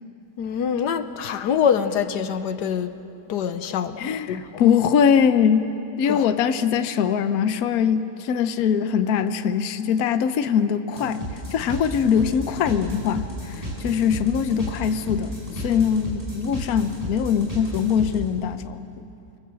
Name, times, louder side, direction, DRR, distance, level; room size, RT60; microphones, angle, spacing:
voice 1, 0.4-2.9 3.3-4.0 4.3-4.4 6.1-6.2, left 7 dB, 85° left, 1.5 m, -24 dB
voice 2, 4.0-5.7 6.0-19.0, left 7 dB, 65° left, 1.2 m, -22 dB
sound 1, 11.0-18.2, equal, 20° right, 5.9 m, -33 dB
26.0 x 20.5 x 7.6 m
omnidirectional pair, 1.8 m